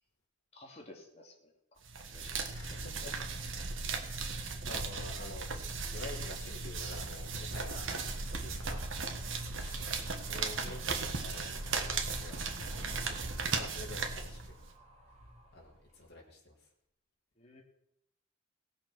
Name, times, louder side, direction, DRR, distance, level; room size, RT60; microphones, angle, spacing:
voice 1, 0.5-1.3 2.1-2.8 17.4-17.6, left 1 dB, 30° left, -1 dB, 2.4 m, -54 dB
sound 1, 1.9-14.7, right 4 dB, 75° right, 1.5 m, -37 dB
voice 2, 2.4-3.2 3.6-5.7 5.9-8.9 9.5-14.6 15.5-16.7, left 2 dB, 50° left, -3 dB, 3.5 m, -49 dB
Animal, 8.2-16.0, equal, 35° right, 3.4 m, -53 dB
18.0 x 6.8 x 6.2 m, 0.74 s
head